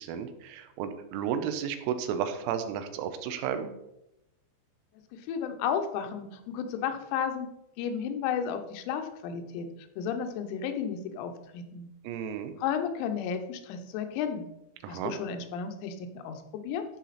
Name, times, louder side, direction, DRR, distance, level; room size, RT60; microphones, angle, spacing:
voice 1, 0.0-3.8 12.1-12.5 14.8-15.1, right 8 dB, 85° right, 8 dB, 3.6 m, -33 dB
voice 2, 5.1-9.7 10.0-11.9 12.6-14.5 14.9-16.8, left 7 dB, 90° left, 6 dB, 3.7 m, -33 dB
13.5 x 5.9 x 4.1 m, 0.86 s
omnidirectional pair, 6.0 m